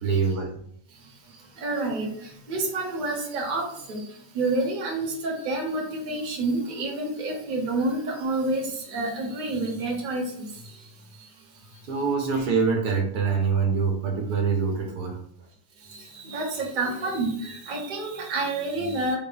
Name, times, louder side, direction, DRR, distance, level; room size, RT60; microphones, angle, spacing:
voice 1, 0.0-0.6 11.9-15.2, right 5 dB, 75° right, 2 dB, 1.2 m, -24 dB
voice 2, 1.6-2.1 2.5-3.6 3.9-4.0 4.3-10.5 16.2-19.2, right 2 dB, 40° right, -1 dB, 0.9 m, -28 dB
3.9 x 2.0 x 3.8 m, 0.66 s
omnidirectional pair, 1.7 m